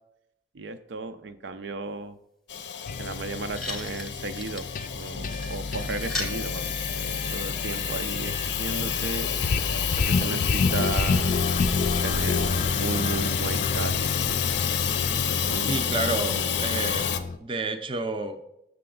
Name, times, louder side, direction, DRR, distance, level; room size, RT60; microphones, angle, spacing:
voice 1, 0.5-2.2 3.0-4.7 4.9-9.3 9.9-11.5 12.0-14.2 15.5-15.8, right 3 dB, 85° right, 9 dB, 0.5 m, -35 dB
Hiss / Toilet flush / Trickle dribble, 2.5-17.2, left 8 dB, 85° left, 0.6 m, -29 dB
sound 1, 2.9-17.4, left 4 dB, 45° left, 0.4 m, -30 dB
sound 2, 3.1-3.2 3.5-6.4 7.4-7.5, left 2 dB, ahead, 0.8 m, -37 dB
voice 2, 15.7-17.1 17.4-18.4, right 3 dB, 30° right, 8 dB, 0.5 m, -30 dB
6.8 x 6.8 x 3.8 m, 0.82 s
head